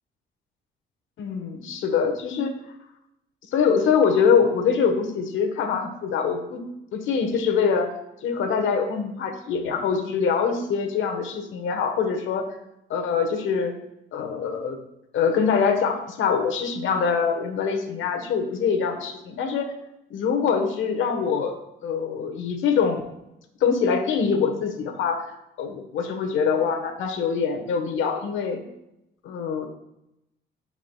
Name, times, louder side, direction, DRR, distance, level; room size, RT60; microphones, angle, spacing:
voice 1, 1.2-2.5 3.5-6.6 6.9-7.9 8.2-12.5 12.9-13.7 14.1-14.8 15.1-19.7 20.1-21.5 21.8-23.0 23.6-25.3 25.6-28.6 29.2-29.7, left 6 dB, 80° left, 5 dB, 1.2 m, -24 dB
14.0 x 4.9 x 2.3 m, 0.87 s
cardioid pair, 90°, 20 cm